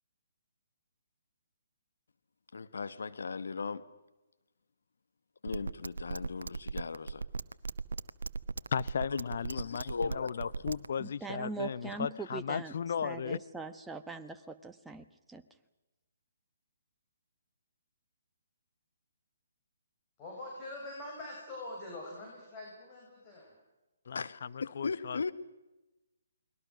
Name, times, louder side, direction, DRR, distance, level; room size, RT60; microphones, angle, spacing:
voice 1, 2.5-3.8 5.4-7.2 9.1-9.2 9.5-10.5 24.1-25.3, left 4 dB, 75° left, 1.3 m, -37 dB
sound 1, 5.5-10.9, right 4 dB, 80° right, 0.8 m, -36 dB
voice 2, 8.7-13.4 24.1-25.3, left 7 dB, 60° left, 0.8 m, -36 dB
voice 3, 11.0-12.7 13.0-15.4, right 4 dB, 5° right, 1.1 m, -42 dB
voice 4, 20.2-23.6, left 1 dB, 25° left, 7.4 m, -44 dB
30.0 x 21.5 x 6.3 m
hypercardioid pair, 140°, 0 cm